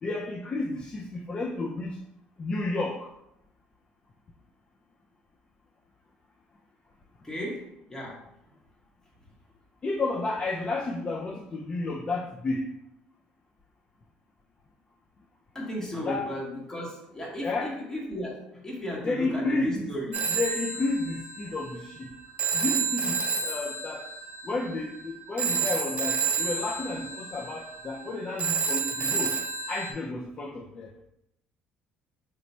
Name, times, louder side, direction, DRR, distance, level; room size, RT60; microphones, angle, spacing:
voice 1, 0.0-2.0 2.4-3.1 9.8-12.7 16.0-16.3 17.4-17.7 19.0-22.1 22.5-24.1 24.4-29.4 29.7-30.9, left 2 dB, 30° left, 0 dB, 0.4 m, -31 dB
voice 2, 7.2-8.2 15.5-20.1, equal, 15° left, -4 dB, 0.9 m, -35 dB
Telephone, 20.1-29.9, right 6 dB, 40° right, 0.4 m, -30 dB
3.1 x 2.2 x 4.0 m, 0.79 s
cardioid pair, 100°, 4 cm